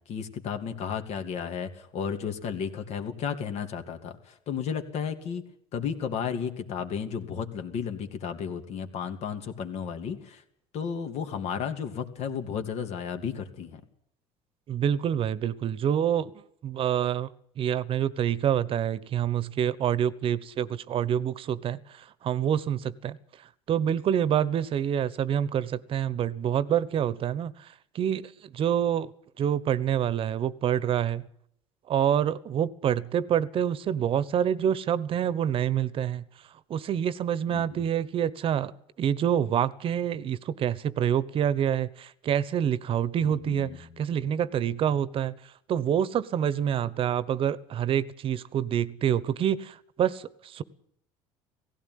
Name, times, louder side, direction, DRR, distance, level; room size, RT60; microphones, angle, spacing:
voice 1, 0.1-5.4 5.7-10.4 10.7-13.8 37.5-37.8 43.2-43.8 44.1-44.3, left 7 dB, 55° left, 7 dB, 2.7 m, -33 dB
voice 2, 14.7-17.3 17.6-23.2 23.7-27.7 27.9-29.1 29.4-31.2 31.9-36.2 36.7-38.7 39.0-45.3 45.7-50.6, right 9 dB, 45° right, 18 dB, 1.1 m, -27 dB
17.5 x 16.0 x 9.5 m, 0.69 s
cardioid pair, 115°, 13 cm